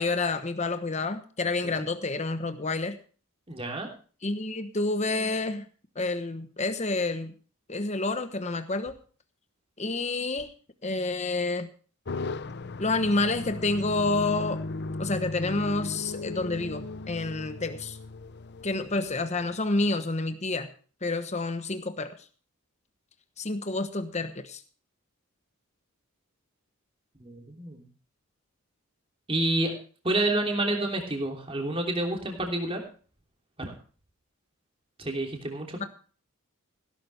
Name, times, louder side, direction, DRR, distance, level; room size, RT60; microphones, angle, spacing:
voice 1, 0.0-3.0 4.2-5.6 6.0-7.3 7.7-8.9 9.8-10.5 10.8-11.7 12.8-14.6 15.0-18.0 18.6-20.7 21.0-22.1 23.4-24.6 35.8-35.9, left 3 dB, 30° left, 9 dB, 1.1 m, -29 dB
voice 2, 3.5-3.9 27.2-27.8 29.3-29.7 30.0-32.8 33.6-33.7 35.0-35.9, right 1 dB, 25° right, 2 dB, 3.1 m, -29 dB
sound 1, 12.0-19.8, left 3 dB, 50° left, 0.7 m, -37 dB
17.0 x 12.0 x 3.4 m, 0.40 s
head